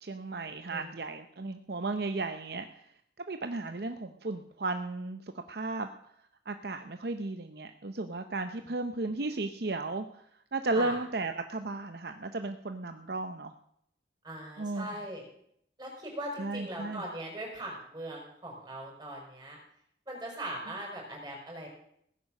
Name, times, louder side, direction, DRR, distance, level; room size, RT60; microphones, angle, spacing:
voice 1, 0.0-2.7 3.3-5.2 5.5-5.9 6.5-10.2 10.5-13.5 14.6-14.9 16.4-17.0, right 3 dB, 60° right, 7 dB, 0.7 m, -34 dB
voice 2, 14.2-15.3 15.8-19.6 20.1-21.7, right 1 dB, 20° right, -1 dB, 5.5 m, -40 dB
17.0 x 9.7 x 6.5 m, 0.69 s
head